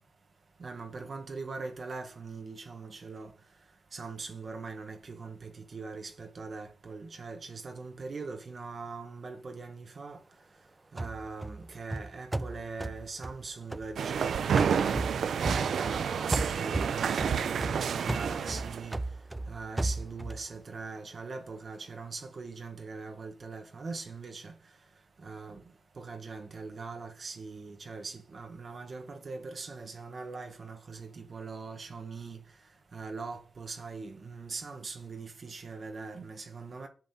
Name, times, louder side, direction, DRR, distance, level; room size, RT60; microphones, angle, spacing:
voice 1, 0.6-3.3 3.9-10.2 10.9-19.0 19.5-24.5 25.2-25.6 26.0-32.4 32.9-36.9, right 4 dB, 55° right, 1.0 m, -41 dB
sound 1, 11.0-14.2 14.6-16.0 16.3-20.5, right 2 dB, 15° right, 0.4 m, -35 dB
sound 2, 14.0-18.9, right 7 dB, 80° right, 0.4 m, -29 dB
10.5 x 6.3 x 2.7 m
cardioid pair, 75°, 0 cm